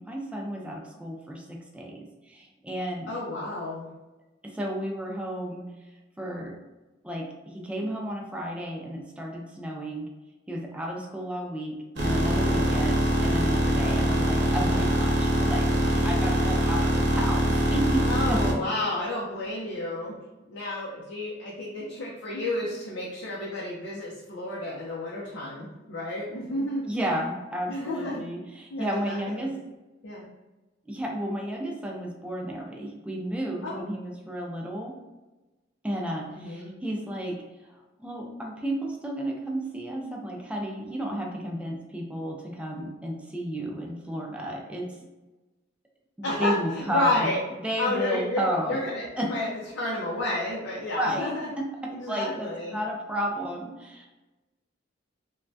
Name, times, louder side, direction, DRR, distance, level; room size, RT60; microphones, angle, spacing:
voice 1, 0.0-3.1 4.4-5.7 6.2-6.6 7.0-10.1 10.5-17.9 18.3-18.6 26.9-29.5 30.9-35.0 35.8-37.4 37.6-45.0 46.4-47.3 47.6-48.8 49.2-49.3 51.0-51.6 52.1-54.1, equal, 5° right, -1 dB, 0.4 m, -32 dB
voice 2, 3.1-3.9 12.4-12.7 18.0-20.1 20.5-26.8 27.7-28.2 28.7-29.5 30.0-30.2 33.6-33.9 36.3-36.7 46.2-47.4 47.8-49.5 49.7-51.5 51.9-52.8, left 2 dB, 80° left, -5 dB, 0.6 m, -31 dB
sound 1, 12.0-18.5, equal, 65° right, 0.8 m, -23 dB
3.2 x 2.2 x 2.6 m, 1.1 s
head